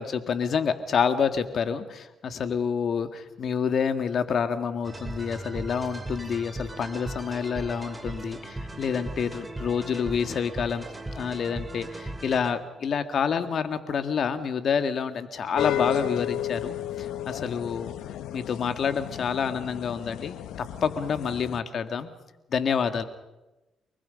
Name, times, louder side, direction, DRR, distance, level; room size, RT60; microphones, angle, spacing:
voice 1, 0.0-10.9 11.1-17.9 18.3-20.4 20.8-22.1 22.5-23.0, left 6 dB, 55° left, 9 dB, 1.9 m, -28 dB
sound 1, 4.8-12.8, right 2 dB, 15° right, 3.0 m, -38 dB
sound 2, 15.6-21.6, left 11 dB, 80° left, 0.9 m, -33 dB
30.0 x 20.0 x 5.3 m, 1.0 s
cardioid pair, 90°, 0 cm